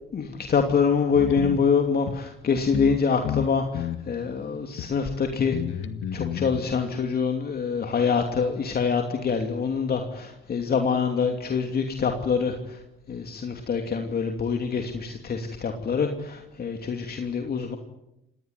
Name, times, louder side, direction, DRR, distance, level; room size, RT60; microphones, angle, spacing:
voice 1, 0.1-5.6 6.1-12.8 13.1-17.8, left 5 dB, 50° left, 4 dB, 2.9 m, -25 dB
sound 1, 1.1-1.6 2.1-2.2 2.7-3.0 3.2-4.0 4.8-4.9 5.4-6.6, left 9 dB, 80° left, 1.7 m, -30 dB
27.0 x 18.5 x 9.7 m, 0.86 s
cardioid pair, 90°, 20 cm